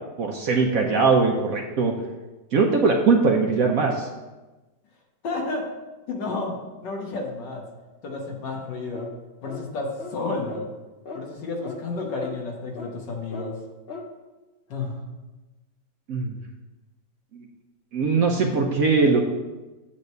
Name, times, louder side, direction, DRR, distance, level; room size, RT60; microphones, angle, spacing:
voice 1, 0.2-1.9 2.5-4.1 16.1-16.3 17.3-17.4 17.9-19.2, right 4 dB, 65° right, 2 dB, 0.9 m, -21 dB
voice 2, 5.2-5.7 6.1-7.6 8.0-9.1 9.4-10.7 11.1-13.6 14.7-15.0, left 3 dB, 70° left, 1 dB, 1.8 m, -31 dB
sound 1, 8.9-9.2 9.4-9.6 10.0-10.2 10.5-10.7 11.1-11.2 11.6-11.8 12.2-12.4 12.8-12.9 13.3-13.5 13.9-14.1, left 3 dB, 55° left, 0.6 m, -37 dB
8.6 x 3.2 x 6.5 m, 1.1 s
omnidirectional pair, 2.0 m